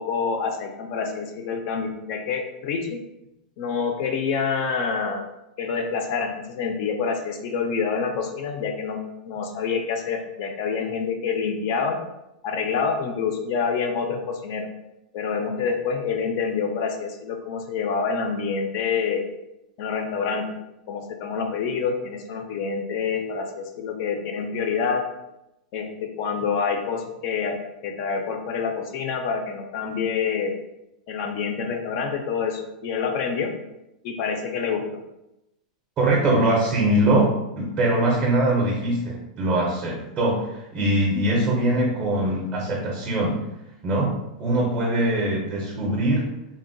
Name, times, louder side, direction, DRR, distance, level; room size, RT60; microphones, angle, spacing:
voice 1, 0.0-3.0 3.6-5.2 5.6-12.0 12.4-14.7 15.1-19.2 19.8-20.5 20.9-25.0 25.7-27.6 27.8-30.5 31.1-33.5 34.0-34.8, left 5 dB, 35° left, 5 dB, 0.3 m, -27 dB
voice 2, 36.0-43.4 43.8-44.1 44.4-46.2, right 1 dB, 20° right, -3 dB, 0.5 m, -22 dB
3.7 x 2.1 x 2.5 m, 0.90 s
supercardioid pair, 175°, 4 cm